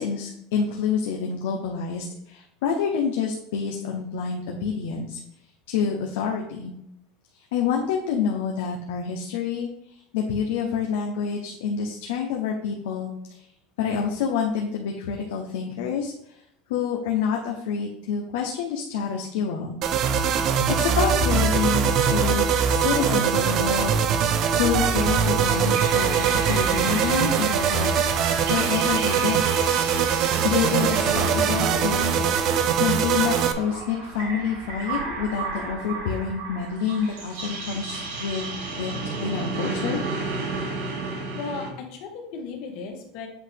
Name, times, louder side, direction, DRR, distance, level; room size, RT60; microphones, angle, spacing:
voice 1, 0.0-5.2 5.7-6.7 7.5-13.4 13.8-16.4 16.7-19.8 20.7-24.0 24.6-29.4 30.4-38.5 38.8-38.9 39.2-40.0, left 7 dB, 85° left, 0 dB, 0.9 m, -28 dB
sound 1, 19.8-33.5, right 7 dB, 45° right, 0.6 m, -22 dB
sound 2, 24.9-41.7, right 3 dB, 80° right, 2.4 m, -33 dB
voice 2, 41.3-43.3, left 5 dB, 60° left, 2 dB, 1.6 m, -36 dB
8.1 x 2.8 x 5.2 m, 0.77 s
supercardioid pair, 135°, 0 cm